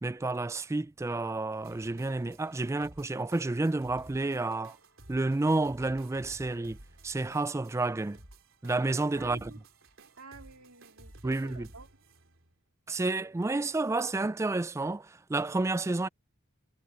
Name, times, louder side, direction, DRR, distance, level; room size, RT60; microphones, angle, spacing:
voice 1, 0.0-4.8 5.1-6.8 7.0-8.2 8.6-9.5 11.2-11.7 12.9-16.1, right 2 dB, 15° right, 0.3 m, -30 dB
sound 1, 1.6-12.5, right 1 dB, 65° right, 4.3 m, -54 dB
voice 2, 9.1-9.6 9.9-11.9, right 4 dB, 80° right, 2.3 m, -50 dB
head